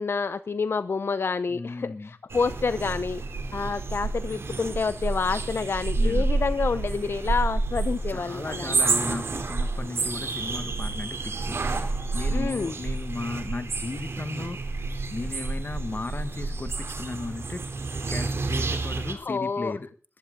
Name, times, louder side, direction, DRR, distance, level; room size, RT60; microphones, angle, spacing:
voice 1, 0.0-3.2 3.5-9.0 12.3-12.7 19.1-19.7, left 4 dB, 70° left, 14 dB, 0.7 m, -28 dB
voice 2, 1.5-2.1 6.0-6.3 8.1-17.6 18.1-19.9, left 3 dB, 50° left, 10 dB, 1.9 m, -36 dB
sound 1, 2.3-19.1, right 3 dB, 85° right, 3.3 m, -29 dB
21.0 x 14.5 x 3.8 m, 0.39 s
wide cardioid pair, 85°, 4 cm